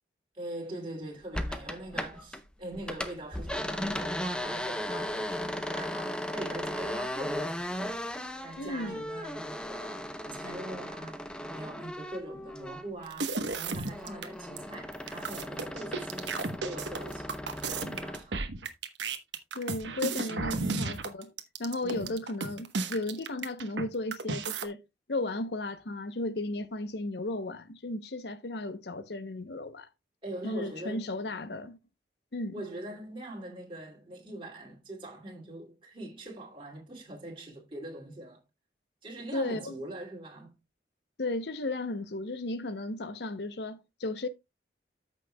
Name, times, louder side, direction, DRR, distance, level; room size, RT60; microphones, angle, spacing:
voice 1, 0.3-7.8 8.4-18.4 20.3-20.6 21.8-22.1 30.2-31.1 32.5-38.4 39.0-40.5, right 1 dB, 30° right, 2.6 m, -43 dB
sound 1, 1.3-2.4 2.7-13.1 13.4-18.3, left 1 dB, 5° left, 0.6 m, -36 dB
voice 2, 8.6-9.0 19.5-21.3 21.6-24.8 25.1-29.9 30.4-31.8 32.3-32.5 39.3-39.7 41.2-44.3, left 2 dB, 65° left, 0.8 m, -34 dB
sound 2, 13.1-14.3 14.6-14.7 14.9-23.8 24.1-24.7, right 3 dB, 85° right, 1.1 m, -33 dB
14.0 x 6.2 x 2.2 m
head